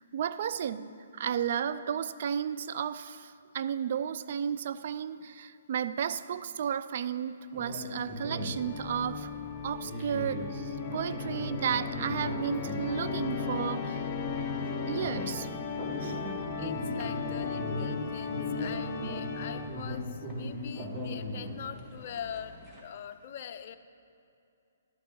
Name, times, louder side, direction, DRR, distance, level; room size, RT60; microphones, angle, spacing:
voice 1, 0.0-9.3 9.6-14.1 14.9-15.5 16.0-16.2, right 8 dB, 55° right, 13 dB, 0.4 m, -33 dB
sound 1, 7.5-22.8, left 1 dB, 10° right, 1.6 m, -40 dB
Organ, 8.2-20.0, left 5 dB, 25° left, 0.9 m, -36 dB
voice 2, 16.6-22.6 22.8-23.8, left 8 dB, 45° left, 8 dB, 0.6 m, -43 dB
12.0 x 6.4 x 6.2 m, 2.6 s
hypercardioid pair, 135°, 0 cm